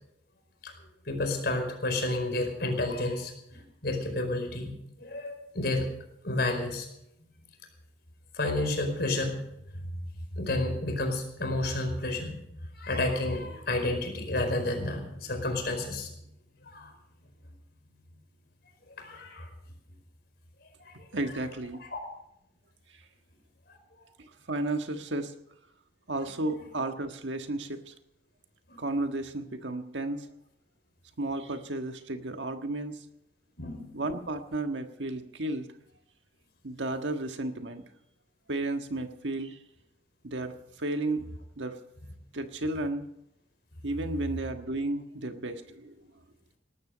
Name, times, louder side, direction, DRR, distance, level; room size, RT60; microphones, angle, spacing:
voice 1, 1.1-4.7 5.0-5.9 6.2-6.9 8.3-9.4 9.7-9.8 10.3-12.4 12.7-16.1 16.6-16.9 19.0-19.5 20.8-20.9 21.9-22.0 28.7-28.8 33.6-33.9, left 2 dB, 60° left, 4 dB, 4.8 m, -30 dB
voice 2, 21.1-21.8 24.2-25.3 26.1-27.9 28.8-30.3 31.2-33.0 33.9-35.7 36.6-37.8 38.5-39.6 40.2-40.5 40.8-41.2 41.6-41.8 42.3-43.1 43.8-46.0, right 2 dB, 85° right, 6 dB, 1.5 m, -33 dB
19.0 x 13.0 x 5.2 m, 0.79 s
head